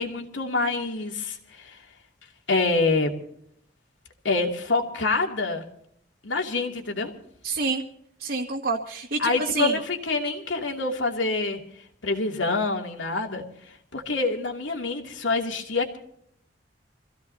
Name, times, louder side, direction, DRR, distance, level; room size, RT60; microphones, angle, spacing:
voice 1, 0.0-1.8 2.5-3.1 4.2-5.6 6.2-7.1 9.2-11.6 12.0-13.4 13.9-16.0, left 3 dB, 85° left, 2 dB, 2.7 m, -26 dB
voice 2, 7.4-7.8 8.2-9.8, right 3 dB, 55° right, -2 dB, 1.9 m, -27 dB
26.0 x 16.0 x 2.8 m, 0.68 s
head